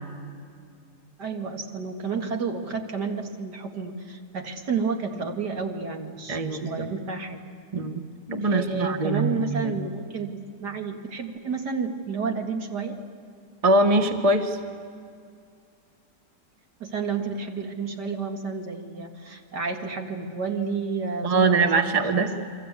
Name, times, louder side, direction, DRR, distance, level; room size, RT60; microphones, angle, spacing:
voice 1, 1.2-7.4 8.4-12.9 16.8-22.4, right 5 dB, 70° right, 3 dB, 2.6 m, -31 dB
voice 2, 6.3-6.9 7.7-8.0 8.3-9.8 13.6-14.6 21.2-22.3, right 2 dB, 25° right, 6 dB, 1.3 m, -23 dB
29.5 x 24.0 x 8.3 m, 2.3 s
omnidirectional pair, 1.9 m